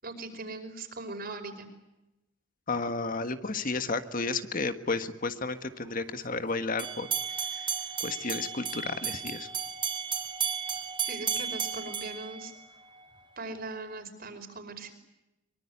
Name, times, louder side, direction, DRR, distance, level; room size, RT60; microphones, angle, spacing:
voice 1, 0.0-1.7 11.1-12.5 13.4-14.9, right 3 dB, 50° right, 6 dB, 5.3 m, -40 dB
voice 2, 2.7-7.1 7.4-7.7 8.0-9.5, left 3 dB, 45° left, 9 dB, 1.6 m, -32 dB
sound 1, 6.8-13.0, right 7 dB, 25° right, 3.7 m, -34 dB
24.0 x 24.0 x 9.8 m, 0.95 s
head